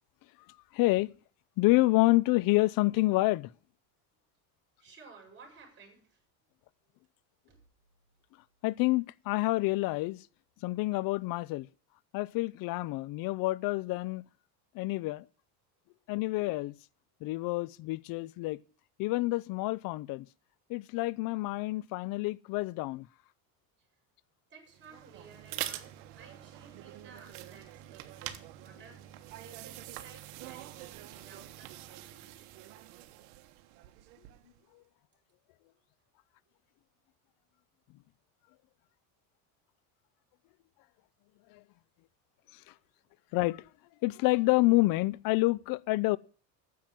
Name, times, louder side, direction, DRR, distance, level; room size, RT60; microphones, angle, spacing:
voice 1, 0.7-1.1 1.6-3.5 8.6-10.2 10.6-11.7 12.1-14.2 14.7-15.2 16.1-16.7 17.2-18.6 19.0-20.3 20.7-23.1 41.5-41.6 43.3-43.7 44.0-46.2, left 21 dB, 50° left, 0.5 m, -28 dB
voice 2, 4.8-6.2 7.5-7.6 23.8-23.9 24.5-32.5 42.5-42.6, right 5 dB, 25° right, 5.9 m, -56 dB
sound 1, 24.7-34.6, right 14 dB, 85° right, 1.5 m, -45 dB
9.5 x 7.4 x 9.0 m
cardioid pair, 140°, 44 cm